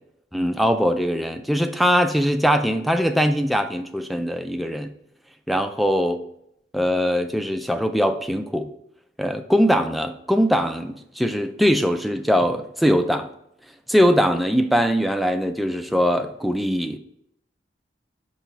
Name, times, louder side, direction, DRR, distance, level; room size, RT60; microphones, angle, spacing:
voice 1, 0.3-4.9 5.5-6.2 6.7-8.7 9.2-13.3 13.9-17.0, equal, ahead, 7 dB, 0.3 m, -21 dB
5.8 x 3.0 x 5.6 m, 0.77 s
head